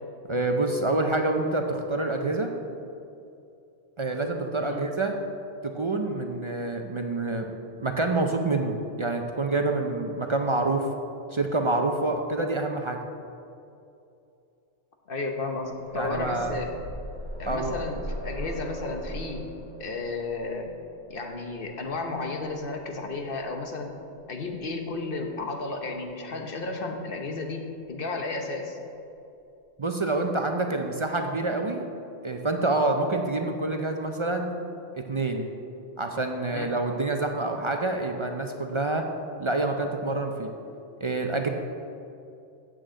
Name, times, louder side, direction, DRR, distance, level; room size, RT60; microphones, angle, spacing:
voice 1, 0.3-2.5 4.0-5.1 5.7-7.5 7.8-10.9 11.3-13.0 15.9-16.6 17.5-17.7 29.8-31.9 32.2-34.5 34.9-35.5 36.0-39.0 39.4-40.5 41.0-41.5, right 2 dB, 35° right, 3 dB, 0.5 m, -27 dB
voice 2, 15.1-16.7 17.4-19.4 19.8-20.7 21.1-23.9 24.3-28.8 36.5-36.7, left 3 dB, 55° left, 3 dB, 1.2 m, -33 dB
sound 1, 15.6-23.4 24.6-24.7 25.0-25.1, equal, 80° left, 1.6 m, -39 dB
7.8 x 6.4 x 7.7 m, 2.6 s
omnidirectional pair, 1.2 m